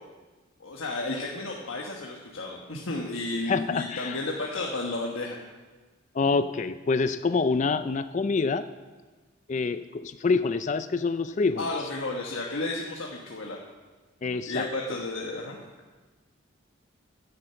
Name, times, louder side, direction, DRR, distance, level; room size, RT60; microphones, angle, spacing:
voice 1, 0.6-5.4 11.6-13.6 14.5-15.6, left 2 dB, 75° left, -2 dB, 1.3 m, -32 dB
voice 2, 3.5-4.2 6.1-8.7 9.5-11.7 14.2-15.0, left 4 dB, 35° left, 12 dB, 0.3 m, -26 dB
10.0 x 10.0 x 7.7 m, 1.3 s
head